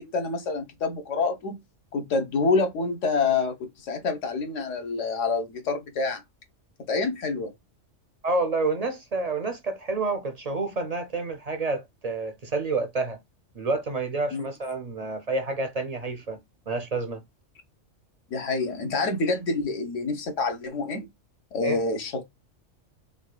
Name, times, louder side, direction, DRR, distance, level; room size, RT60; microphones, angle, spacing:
voice 1, 0.0-1.6 1.9-6.2 6.9-7.5 14.3-14.5 18.3-21.1 21.5-22.2, left 4 dB, 75° left, 1.3 m, -27 dB
voice 2, 8.2-13.2 13.6-16.4 16.7-17.2 21.6-21.8, right 3 dB, 50° right, 0.4 m, -29 dB
5.1 x 2.3 x 2.2 m
omnidirectional pair, 1.3 m